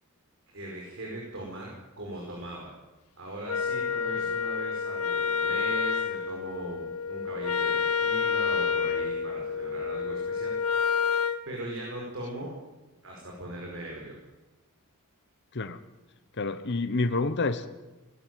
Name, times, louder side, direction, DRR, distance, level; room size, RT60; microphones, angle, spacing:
voice 1, 0.5-2.7 3.2-10.6 11.4-12.5 13.0-14.2, right 1 dB, 60° right, -1 dB, 5.2 m, -39 dB
Wind instrument woodwind instrument, 3.5-11.4, left 6 dB, 80° left, 1.4 m, -29 dB
voice 2, 16.4-17.7, left 3 dB, 50° left, 9 dB, 1.1 m, -28 dB
19.5 x 16.0 x 9.4 m, 1.1 s
head